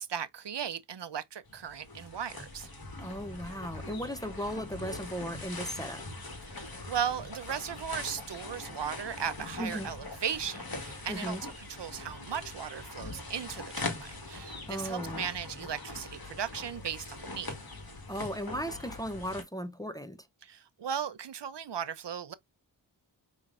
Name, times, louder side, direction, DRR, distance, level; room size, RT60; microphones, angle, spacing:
voice 1, 0.0-2.7 6.5-17.6 20.4-22.3, right 8 dB, 65° right, 0.6 m, -37 dB
sound 1, 1.5-19.4, left 3 dB, 50° left, 1.6 m, -42 dB
voice 2, 3.0-6.0 9.6-9.9 11.1-11.4 14.7-15.2 18.1-20.3, equal, 10° left, 0.6 m, -36 dB
5.7 x 3.1 x 2.5 m
wide cardioid pair, 45°, 46 cm